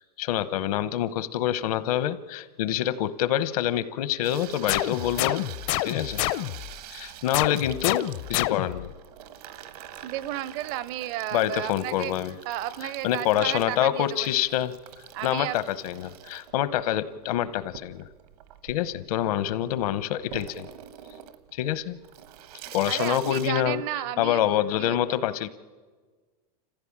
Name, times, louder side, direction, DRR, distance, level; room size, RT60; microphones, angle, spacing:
voice 1, 0.0-5.4 5.8-6.2 6.9-8.0 8.3-8.9 11.3-12.3 13.0-14.7 15.2-18.1 18.6-20.7 21.5-22.0 22.7-23.8 24.2-25.5, left 12 dB, 65° left, 15 dB, 1.0 m, -26 dB
Water tap faucet / Sink (filling or washing), 4.2-23.5, right 11 dB, 75° right, 1.3 m, -46 dB
sound 1, 4.7-6.7 7.3-8.9, left 16 dB, 50° left, 0.6 m, -28 dB
voice 2, 10.0-12.1 12.5-14.3 15.1-15.6 22.9-24.4 24.8-25.0, right 13 dB, 45° right, 19 dB, 0.6 m, -33 dB
28.0 x 15.5 x 8.7 m, 1.5 s
supercardioid pair, 150°, 20 cm